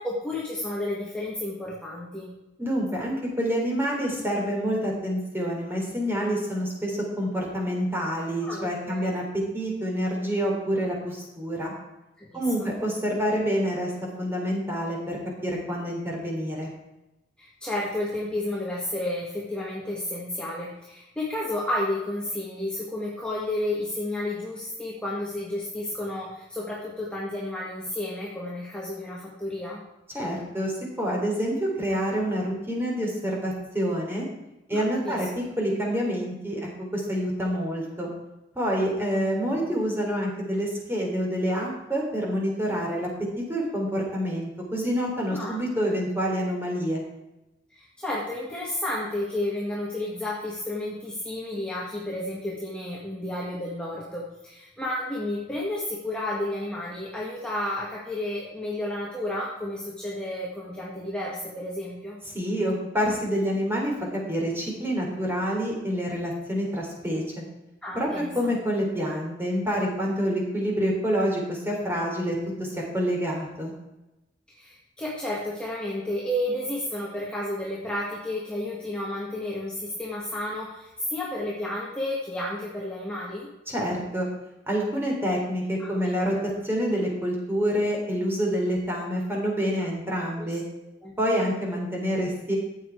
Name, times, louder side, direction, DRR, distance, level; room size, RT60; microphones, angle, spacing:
voice 1, 0.0-2.3 8.4-9.2 12.2-12.7 17.4-29.8 34.7-35.3 39.2-39.3 39.5-39.6 45.3-45.5 47.7-62.2 67.8-68.5 74.5-83.5 85.8-86.2 89.8-90.0 90.4-90.6 91.0-91.1, left 1 dB, 5° left, -5 dB, 1.9 m, -32 dB
voice 2, 2.6-9.2 9.5-11.7 12.3-13.9 14.2-16.7 30.1-30.7 31.0-34.3 34.7-38.1 38.6-43.1 43.4-47.0 62.3-67.2 67.9-72.7 72.9-73.7 83.7-84.3 84.7-86.4 86.6-90.6 91.2-92.6, equal, 15° right, -1 dB, 3.6 m, -27 dB
14.0 x 8.7 x 4.7 m, 0.96 s
head